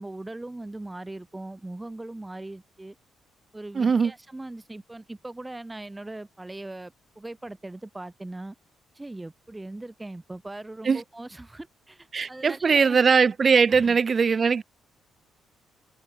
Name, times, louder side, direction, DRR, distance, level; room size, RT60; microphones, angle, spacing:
voice 1, 0.0-2.9 3.5-8.5 8.9-13.0 13.7-14.0, right 2 dB, 15° right, 2.6 m, -40 dB
voice 2, 3.7-4.1 10.8-11.0 12.1-14.6, right 5 dB, 40° right, 0.4 m, -20 dB
cardioid pair, 90°, 0 cm